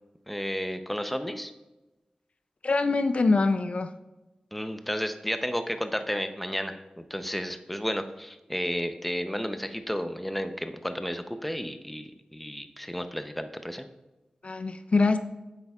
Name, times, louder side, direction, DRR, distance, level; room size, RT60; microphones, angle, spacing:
voice 1, 0.3-1.5 4.5-13.9, equal, 5° left, 8 dB, 0.6 m, -32 dB
voice 2, 2.6-3.9 14.4-15.2, left 3 dB, 55° left, 9 dB, 0.4 m, -24 dB
9.7 x 7.9 x 2.4 m, 1.0 s
wide cardioid pair, 70°, 2 cm